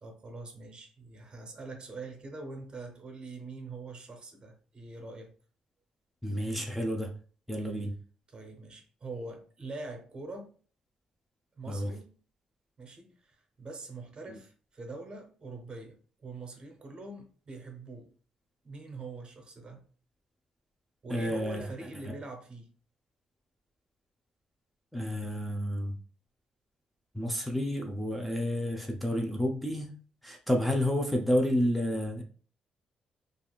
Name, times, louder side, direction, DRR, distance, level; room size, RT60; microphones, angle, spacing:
voice 1, 0.0-5.3 7.6-7.7 8.3-10.6 11.5-12.1 12.8-18.1 18.6-19.8 21.0-22.7, right 3 dB, 45° right, 0.8 m, -44 dB
voice 2, 6.2-7.1 7.5-7.9 11.7-11.9 21.1-21.7 24.9-25.9 27.1-29.9 30.2-32.2, equal, ahead, 0.6 m, -30 dB
3.3 x 2.4 x 2.3 m
cardioid pair, 80°, 2 cm